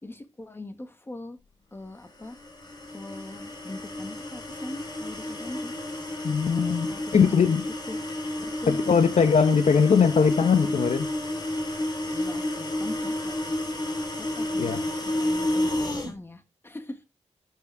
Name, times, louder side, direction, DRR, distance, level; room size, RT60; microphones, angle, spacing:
voice 1, 0.0-1.4 1.7-2.4 2.9-5.7 6.9-7.6 7.9-8.1 8.4-8.8 12.1-13.6 14.2-17.0, left 2 dB, 20° left, 1.9 m, -41 dB
sound 1, 2.2-16.1, left 1 dB, 35° left, 4.3 m, -31 dB
voice 2, 6.2-7.6 8.7-11.1 14.6-14.8, left 6 dB, 70° left, 1.1 m, -21 dB
13.0 x 6.6 x 3.5 m
wide cardioid pair, 150°, 12 cm